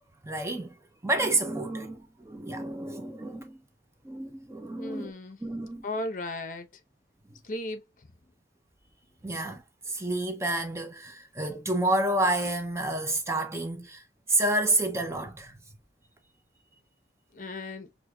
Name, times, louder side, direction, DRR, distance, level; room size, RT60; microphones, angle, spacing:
voice 1, 0.2-0.8 1.0-3.6 4.0-5.1 5.4-5.8 9.2-15.6, right 2 dB, 15° right, 0.5 m, -29 dB
voice 2, 4.8-5.4 5.8-6.7 7.4-8.3 17.3-17.9, left 2 dB, 45° left, 0.8 m, -36 dB
6.2 x 2.6 x 2.3 m
head